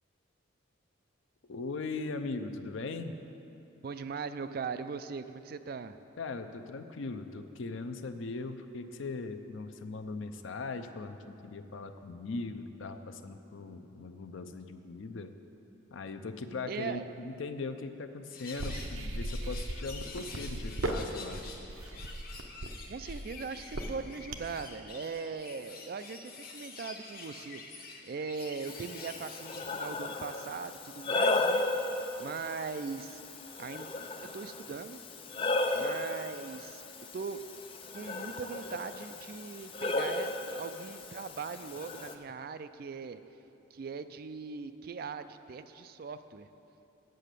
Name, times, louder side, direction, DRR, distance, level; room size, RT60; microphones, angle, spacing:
voice 1, 1.4-3.2 6.2-15.4 15.9-21.4, left 3 dB, 75° left, 8 dB, 0.5 m, -39 dB
voice 2, 3.8-6.0 16.7-17.1 22.9-31.7 32.2-33.2 33.6-33.9 34.2-35.0 35.7-36.8 37.1-37.4 37.9-43.2 43.7-46.5, right 5 dB, 50° right, 11 dB, 0.3 m, -40 dB
sound 1, 18.3-29.7, left 4 dB, 45° left, 1.0 m, -48 dB
sound 2, 18.6-24.6, right 1 dB, 80° right, 0.7 m, -37 dB
Breathing, 28.7-42.1, left 2 dB, 25° left, 0.4 m, -35 dB
8.2 x 7.7 x 6.7 m, 2.8 s
head